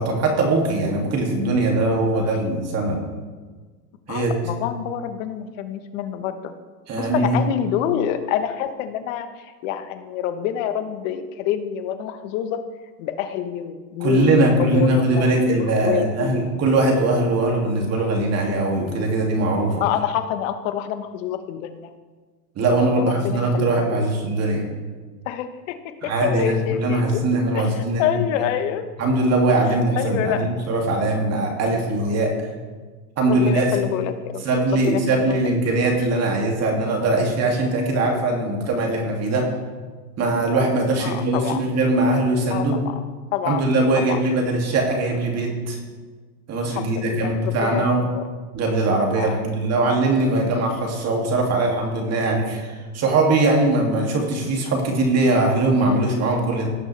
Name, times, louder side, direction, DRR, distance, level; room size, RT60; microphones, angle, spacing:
voice 1, 0.0-3.0 4.1-4.4 6.9-7.4 14.0-19.8 22.6-24.6 26.0-28.2 29.0-32.6 33.2-33.7 34.4-39.5 40.2-42.8 43.5-45.8 46.5-48.0 48.5-56.7, right 2 dB, 30° right, 1 dB, 2.5 m, -21 dB
voice 2, 4.1-6.5 6.9-12.6 13.0-16.4 19.8-21.9 22.9-24.0 25.2-27.2 27.5-28.9 29.9-30.5 33.3-34.4 34.7-35.4 41.0-41.6 42.5-42.9 43.3-43.6 44.1-44.2 46.7-47.8 48.1-48.2 49.2-49.4, left 10 dB, 50° left, 9 dB, 1.1 m, -27 dB
17.0 x 6.2 x 3.4 m, 1.4 s
hypercardioid pair, 115°, 49 cm